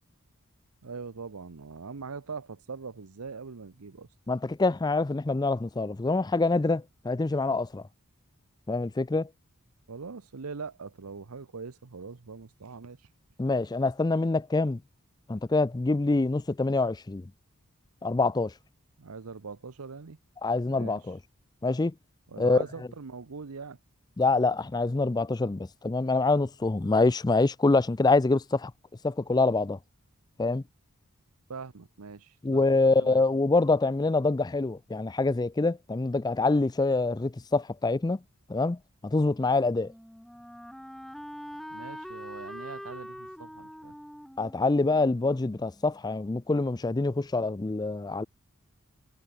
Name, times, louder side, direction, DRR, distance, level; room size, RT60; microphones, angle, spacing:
voice 1, 0.8-4.1 9.9-13.1 19.0-20.2 20.7-21.1 22.3-23.8 31.5-33.2 41.7-43.9, right 5 dB, 90° right, 0.8 m, -42 dB
voice 2, 4.3-7.8 8.7-9.3 13.4-14.8 15.3-17.3 18.0-18.5 20.4-21.2 21.6-21.9 22.4-22.6 24.2-28.7 29.0-29.8 30.4-30.6 32.4-38.2 38.5-38.8 39.0-39.9 44.4-48.3, left 3 dB, 20° left, 0.4 m, -25 dB
Wind instrument woodwind instrument, 39.3-46.2, equal, ahead, 3.1 m, -44 dB
head